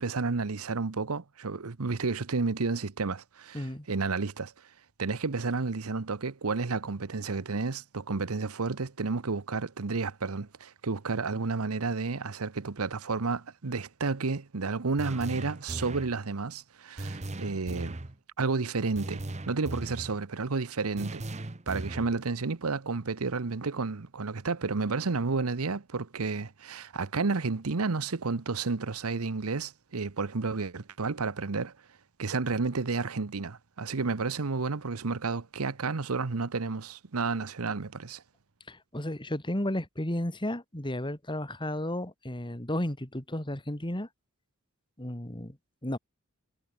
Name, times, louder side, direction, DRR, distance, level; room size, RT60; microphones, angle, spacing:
voice 1, 0.0-4.5 5.0-18.0 18.4-21.2 21.7-31.7 32.2-38.2, right 4 dB, 85° right, 0.9 m, -31 dB
voice 2, 3.5-3.9 38.7-44.1 45.0-45.6 45.8-46.0, left 1 dB, 20° left, 3.0 m, -33 dB
sound 1, 15.0-16.2 17.0-18.1 19.0-20.2 21.0-22.2, right 2 dB, 30° right, 1.0 m, -37 dB
head